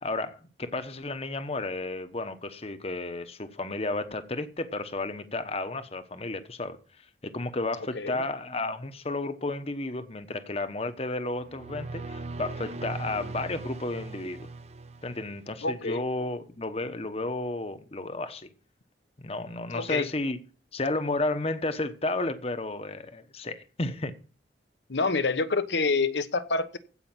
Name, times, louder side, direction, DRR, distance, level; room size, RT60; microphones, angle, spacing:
voice 1, 0.0-6.8 7.2-14.5 15.0-18.5 19.2-20.4 20.7-24.1, left 2 dB, 35° left, 1.0 m, -32 dB
sound 1, 11.3-15.7, right 3 dB, 40° right, 0.8 m, -39 dB
voice 2, 15.6-16.0 19.7-20.1 24.9-26.8, left 3 dB, 80° left, 1.1 m, -27 dB
15.5 x 5.6 x 7.3 m
head